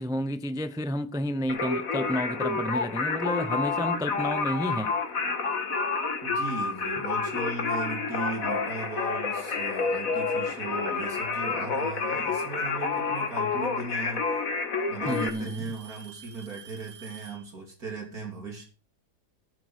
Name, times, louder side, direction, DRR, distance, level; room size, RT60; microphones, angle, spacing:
voice 1, 0.0-5.0 15.0-15.6, equal, 5° right, 0.5 m, -30 dB
Singing, 1.5-15.3, left 4 dB, 55° left, 2.2 m, -29 dB
Alarm / Tick-tock, 3.5-3.8 4.6-4.7 5.5-5.6 7.3-7.4 8.6-8.7 10.0-10.4 12.2-12.3 13.5-13.6 13.9-14.4 15.1-17.5, right 7 dB, 75° right, 3.7 m, -49 dB
voice 2, 6.2-14.4 14.9-18.6, right 3 dB, 60° right, 4.0 m, -37 dB
13.5 x 9.3 x 6.5 m
omnidirectional pair, 1.8 m